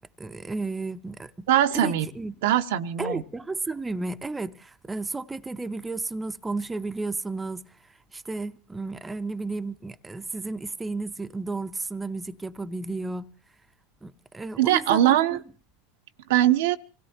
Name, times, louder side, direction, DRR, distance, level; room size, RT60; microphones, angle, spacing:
voice 1, 0.2-1.5 1.7-2.3 3.0-7.8 8.1-13.3 14.0-15.4, right 3 dB, 15° right, 0.7 m, -33 dB
voice 2, 1.5-2.1 2.4-3.2 14.6-15.4 16.3-16.8, right 12 dB, 70° right, 0.7 m, -21 dB
26.0 x 17.0 x 2.8 m
hypercardioid pair, 85°, 0 cm